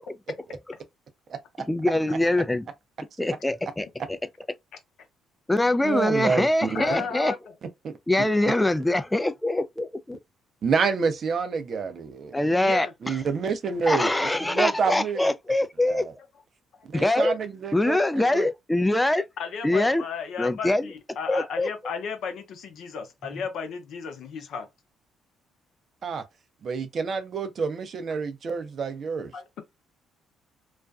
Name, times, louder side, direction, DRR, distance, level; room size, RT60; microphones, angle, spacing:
voice 1, 1.7-2.7 3.2-3.9 5.5-7.3 8.1-10.2 12.3-12.9 13.9-16.1 16.9-17.3 17.7-19.2 19.6-20.0 20.4-20.9 21.3-21.7, left 1 dB, 10° left, 0.3 m, -23 dB
voice 2, 5.8-7.0 7.8-7.9 10.6-12.4 13.0-15.3 15.8-16.1 16.9-18.5 26.0-26.2 26.6-29.3, right 5 dB, 55° right, 0.5 m, -28 dB
voice 3, 6.7-7.5 12.6-12.9 19.4-24.7 29.3-29.6, left 6 dB, 65° left, 0.6 m, -34 dB
2.4 x 2.2 x 2.3 m
hypercardioid pair, 55°, 0 cm